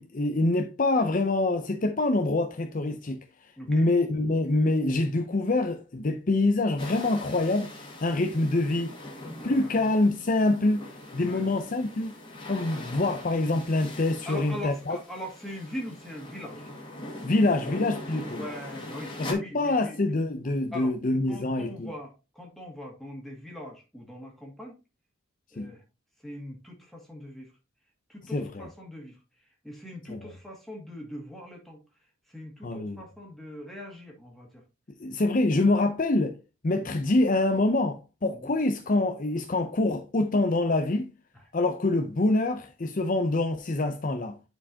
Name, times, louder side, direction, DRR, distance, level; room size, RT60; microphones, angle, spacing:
voice 1, 0.0-3.2 3.7-8.9 9.4-10.9 11.1-12.1 12.5-15.0 17.2-18.5 19.2-21.9 25.6-25.7 28.2-28.7 30.1-30.3 32.6-33.0 35.0-36.4 36.6-41.1 41.5-44.4, left 2 dB, 40° left, 0.5 m, -25 dB
voice 2, 3.6-3.9 9.5-9.7 11.2-11.5 14.3-16.7 18.3-20.0 20.7-20.9 21.3-24.8 25.5-25.8 26.2-27.5 28.1-29.2 29.6-31.8 32.3-34.6 36.7-36.9 38.4-38.5, left 1 dB, ahead, 2.0 m, -41 dB
sound 1, 6.8-19.3, left 1 dB, 25° left, 1.7 m, -41 dB
9.8 x 4.6 x 2.8 m
head